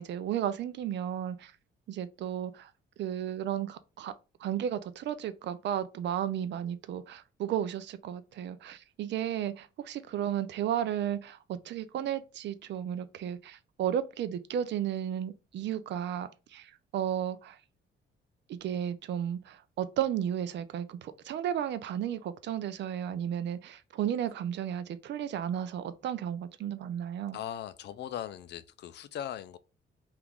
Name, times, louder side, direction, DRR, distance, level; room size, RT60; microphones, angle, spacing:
voice 1, 0.0-1.5 1.9-2.7 3.0-4.1 4.4-17.6 18.5-27.4, right 10 dB, 65° right, 0.4 m, -33 dB
voice 2, 27.3-29.6, left 10 dB, 60° left, 0.4 m, -39 dB
2.9 x 2.5 x 3.4 m
cardioid pair, 90°, 20 cm